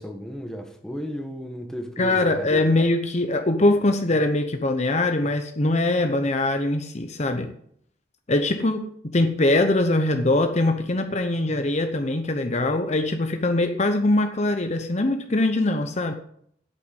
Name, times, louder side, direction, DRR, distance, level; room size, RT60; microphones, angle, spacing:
voice 1, 0.0-2.7, equal, 5° left, 1.5 m, -35 dB
voice 2, 2.0-7.5 8.3-8.9 9.1-16.1, left 2 dB, 40° left, 0.9 m, -22 dB
8.6 x 8.5 x 8.0 m
head